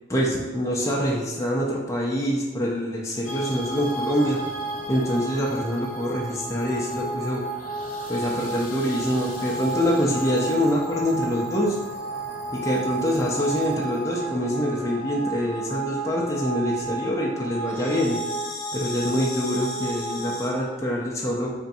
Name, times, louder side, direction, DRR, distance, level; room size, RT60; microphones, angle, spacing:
voice 1, 0.1-4.4 4.9-7.4 8.1-11.8 12.5-18.2 18.7-21.5, equal, 15° left, -3 dB, 0.5 m, -25 dB
sound 1, 3.2-20.5, right 2 dB, 50° left, 0.8 m, -32 dB
3.5 x 2.6 x 4.1 m, 1.3 s
head